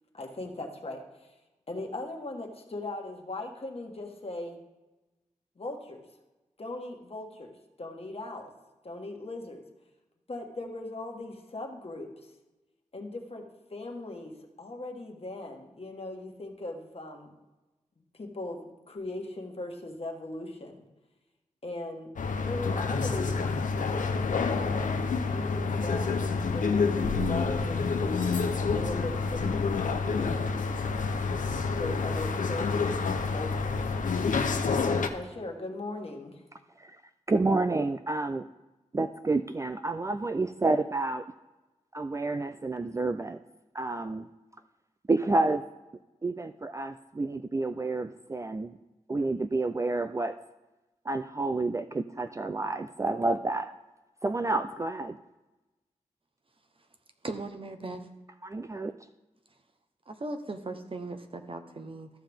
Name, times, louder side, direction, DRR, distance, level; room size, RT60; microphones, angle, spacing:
voice 1, 0.1-1.3 1.7-4.6 5.6-6.0 6.6-8.5 8.8-9.6 10.3-12.1 12.9-17.3 18.1-20.8 21.6-22.1 22.4-23.4 23.9-25.0 25.3-30.5 31.8-34.0 34.8-36.4, left 2 dB, 50° left, 1 dB, 1.5 m, -39 dB
sound 1, 22.2-35.1, left 4 dB, 85° left, 0.6 m, -28 dB
voice 2, 37.3-38.5 38.9-41.2 41.9-43.4 43.7-44.3 45.1-45.6 46.2-48.7 49.1-50.4 51.1-53.7 54.2-55.2 58.4-59.0, right 2 dB, 25° right, 9 dB, 0.3 m, -29 dB
voice 3, 57.2-58.0 60.1-62.1, right 2 dB, 45° right, 6 dB, 0.9 m, -38 dB
14.0 x 5.6 x 3.5 m, 1.1 s
cardioid pair, 50°, 13 cm